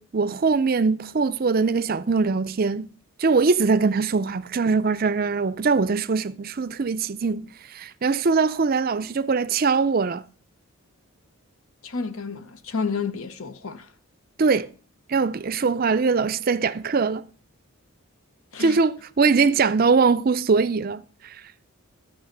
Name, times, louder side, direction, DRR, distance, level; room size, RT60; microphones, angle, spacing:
voice 1, 0.0-2.9 3.2-10.2 14.4-14.7 15.1-17.2 18.6-21.3, right 4 dB, 40° right, 0.4 m, -22 dB
voice 2, 11.8-13.8 18.5-18.8, left 5 dB, 70° left, 0.9 m, -30 dB
13.5 x 5.6 x 6.6 m
head